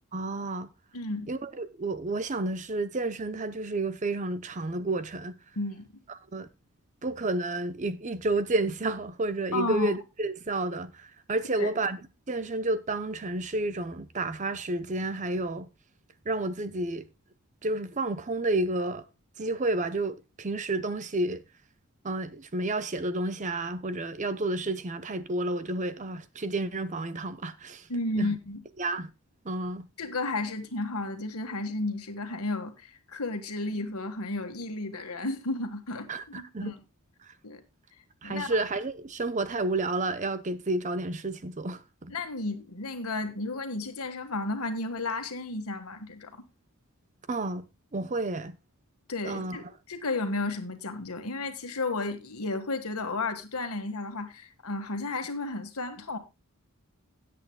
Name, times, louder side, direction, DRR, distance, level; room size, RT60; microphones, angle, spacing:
voice 1, 0.1-0.7 1.3-5.4 6.1-6.5 7.0-12.0 12.3-15.7 16.3-17.1 17.6-19.1 19.4-21.4 22.0-27.9 28.2-28.3 28.8-29.1 29.4-29.9 36.1-36.7 38.2-42.1 47.3-47.6 47.9-48.6 49.2-49.6, right 2 dB, 35° right, 0.7 m, -30 dB
voice 2, 0.9-1.3 5.5-5.9 9.5-9.9 11.6-11.7 27.9-28.6 30.0-36.1 36.3-36.8 37.4-37.6 38.2-38.5 42.1-46.3 49.1-56.2, left 2 dB, 85° left, 1.6 m, -33 dB
17.0 x 8.5 x 2.2 m
head